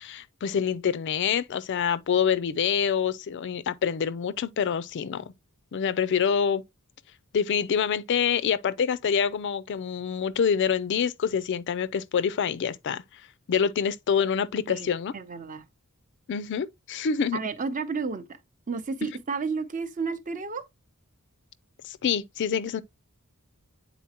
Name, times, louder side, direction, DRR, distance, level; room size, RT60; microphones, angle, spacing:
voice 1, 0.0-5.2 5.7-6.6 7.3-13.0 13.5-15.1 16.3-17.4 21.8-22.8, left 7 dB, 55° left, 0.4 m, -26 dB
voice 2, 15.1-15.7 17.3-18.3 18.7-20.6, right 4 dB, 35° right, 0.7 m, -31 dB
8.4 x 4.0 x 2.8 m
head